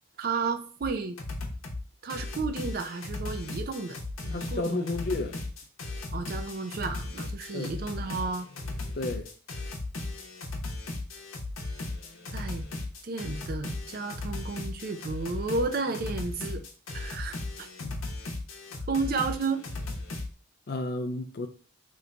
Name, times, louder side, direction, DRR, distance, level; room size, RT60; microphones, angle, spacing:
voice 1, 0.2-1.2 2.0-4.0 4.2-4.9 6.1-8.5 12.3-12.6 13.0-16.6 16.9-17.7 18.9-19.6, right 4 dB, 45° right, 0.4 m, -32 dB
sound 1, 0.8-0.9 1.2-1.8 2.1-20.3, left 2 dB, 85° left, 0.8 m, -36 dB
voice 2, 4.3-5.4 7.5-7.7 8.9-9.3 17.8-18.0 18.7-18.8 20.7-21.5, left 2 dB, 50° left, 0.4 m, -32 dB
3.0 x 2.2 x 3.8 m
head